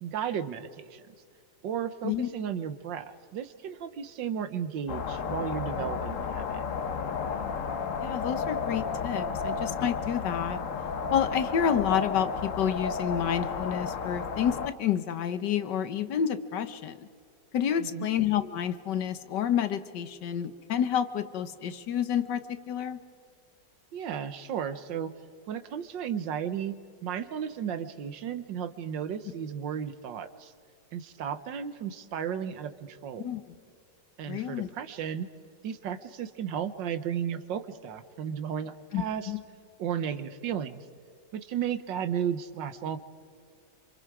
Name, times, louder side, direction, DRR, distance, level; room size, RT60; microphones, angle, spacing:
voice 1, 0.0-1.0 1.6-6.6 17.8-18.1 23.9-25.1 25.5-26.7 27.0-30.5 30.9-33.3 34.2-35.3 35.6-39.3 39.8-40.8 41.3-43.0, right 8 dB, 80° right, 11 dB, 1.7 m, -34 dB
sound 1, 4.9-14.7, left 5 dB, 50° left, 1.2 m, -32 dB
voice 2, 8.0-10.6 11.1-17.1 17.5-23.0 33.2-33.6 34.3-34.7 38.9-39.4, left 9 dB, 70° left, 11 dB, 1.6 m, -29 dB
27.0 x 27.0 x 4.9 m, 2.2 s
omnidirectional pair, 2.0 m